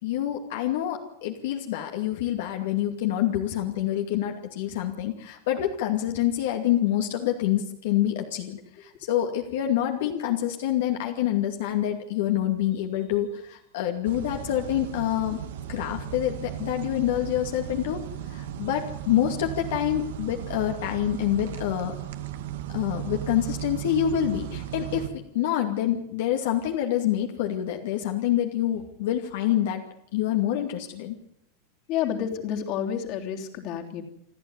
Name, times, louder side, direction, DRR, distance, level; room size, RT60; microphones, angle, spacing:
voice 1, 0.0-15.4 15.7-22.0 22.7-29.8 30.1-31.2, left 11 dB, 70° left, 3 dB, 2.4 m, -27 dB
sound 1, 14.0-25.1, right 11 dB, 80° right, 2.2 m, -36 dB
voice 2, 31.9-34.0, left 9 dB, 45° left, 2 dB, 3.3 m, -29 dB
28.5 x 12.0 x 9.8 m, 0.79 s
supercardioid pair, 150°, 0 cm